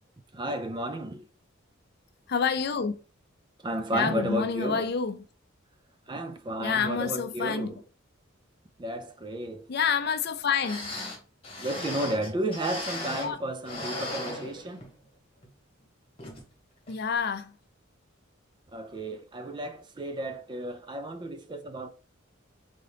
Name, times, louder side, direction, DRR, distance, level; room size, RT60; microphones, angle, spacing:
voice 1, 0.3-1.2 3.6-4.9 6.1-7.8 8.8-9.7 11.6-14.8 18.7-21.9, right 1 dB, 20° right, 0.4 m, -33 dB
voice 2, 2.3-2.9 3.9-5.2 6.6-7.7 9.7-10.9 13.2-13.4 16.9-17.5, left 6 dB, 50° left, 0.5 m, -28 dB
sound 1, 10.3-10.4 10.6-13.4 13.6-15.0 15.4-15.5 16.2-16.4 16.9-17.0, left 1 dB, 25° left, 1.2 m, -37 dB
3.8 x 3.7 x 3.4 m
head